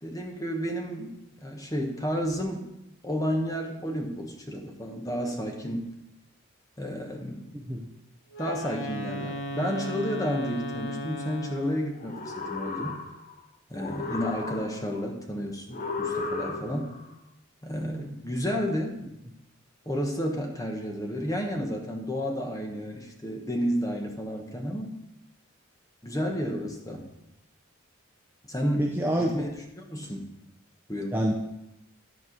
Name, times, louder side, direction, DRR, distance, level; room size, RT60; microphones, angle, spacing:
voice 1, 0.0-2.7 3.0-5.8 6.8-7.4 8.4-13.0 13.7-16.9 17.6-19.0 19.8-24.9 26.0-27.1 28.5-30.3 30.9-31.1, equal, 15° left, 1 dB, 1.2 m, -31 dB
Wind instrument woodwind instrument, 8.3-12.0, equal, 75° left, 1.2 m, -36 dB
sound 1, 12.0-13.4 13.7-15.0 15.7-17.0, left 4 dB, 35° left, 0.8 m, -34 dB
voice 2, 28.8-29.3 31.1-31.3, equal, 10° right, -1 dB, 0.6 m, -26 dB
11.0 x 4.7 x 5.9 m, 0.86 s
head